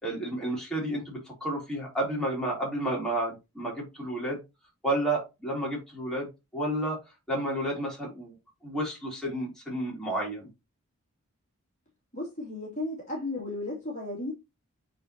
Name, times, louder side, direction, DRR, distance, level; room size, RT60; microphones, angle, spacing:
voice 1, 0.0-4.4 4.8-7.0 7.3-8.4 8.6-10.5, right 1 dB, 5° left, 3.3 m, -31 dB
voice 2, 12.1-14.3, left 2 dB, 30° left, 2.7 m, -34 dB
8.6 x 4.0 x 2.9 m
head